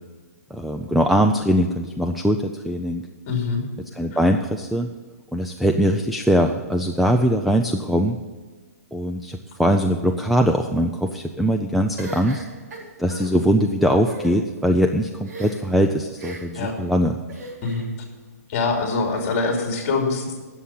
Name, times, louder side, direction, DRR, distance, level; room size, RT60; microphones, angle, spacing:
voice 1, 0.5-3.0 3.9-4.9 5.3-8.2 8.9-12.4 13.0-17.2, equal, ahead, 4 dB, 0.3 m, -21 dB
voice 2, 3.3-3.6 16.5-16.7 17.6-17.9 18.5-20.4, left 4 dB, 30° left, 2 dB, 3.0 m, -24 dB
sound 1, 12.0-13.3 14.0-14.3 15.2-15.7 16.2-16.6 17.3-17.9, right 2 dB, 90° right, 3.9 m, -37 dB
11.5 x 7.2 x 8.5 m, 1.4 s
hypercardioid pair, 160°, 9 cm